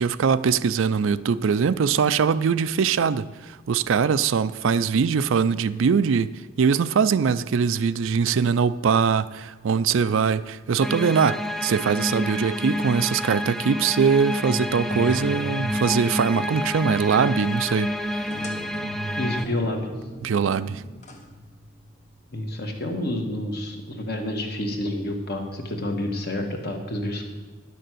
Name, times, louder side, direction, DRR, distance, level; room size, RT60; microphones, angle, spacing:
voice 1, 0.0-6.3 6.6-18.3 20.2-20.8, right 6 dB, 70° right, 0.4 m, -22 dB
sound 1, 10.8-19.5, left 1 dB, ahead, 0.3 m, -29 dB
sound 2, 14.5-22.1, equal, 35° left, 1.4 m, -38 dB
voice 2, 19.1-19.9 22.3-27.2, left 1 dB, 50° left, 1.6 m, -29 dB
11.0 x 6.7 x 7.7 m
head